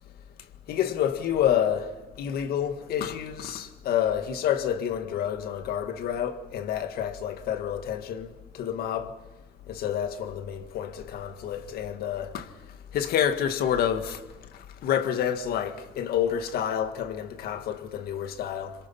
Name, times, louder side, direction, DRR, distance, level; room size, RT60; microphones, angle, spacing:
voice 1, 0.7-1.9 2.2-8.3 8.5-9.1 9.7-12.4 12.9-14.2 14.8-18.7, left 9 dB, 70° left, 1.8 m, -28 dB
27.0 x 25.5 x 5.6 m
cardioid pair, 135°, 17 cm